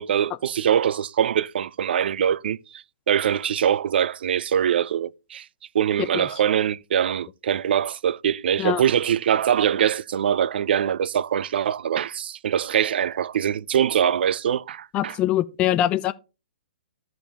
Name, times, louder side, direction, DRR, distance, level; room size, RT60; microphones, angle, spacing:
voice 1, 0.0-5.5 5.7-15.2, right 9 dB, 70° right, 0.3 m, -23 dB
voice 2, 14.9-16.1, left 12 dB, 20° left, 0.3 m, -23 dB
14.0 x 5.1 x 2.8 m
hypercardioid pair, 140°, 6 cm